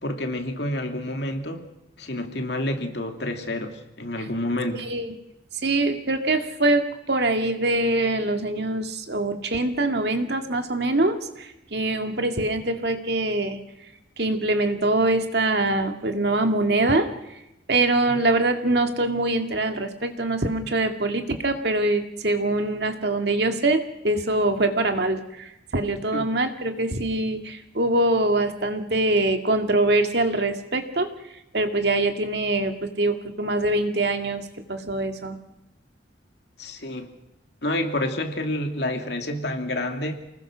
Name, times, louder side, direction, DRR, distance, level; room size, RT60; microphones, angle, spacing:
voice 1, 0.0-1.7 2.0-4.9 26.1-26.3 36.6-37.1 37.6-40.2, left 1 dB, 60° left, 5 dB, 2.7 m, -28 dB
voice 2, 4.7-5.1 5.6-13.6 14.2-17.4 17.7-31.1 31.5-34.4 34.7-35.4, right 2 dB, 55° right, 6 dB, 2.2 m, -24 dB
29.0 x 20.0 x 6.3 m, 0.92 s
head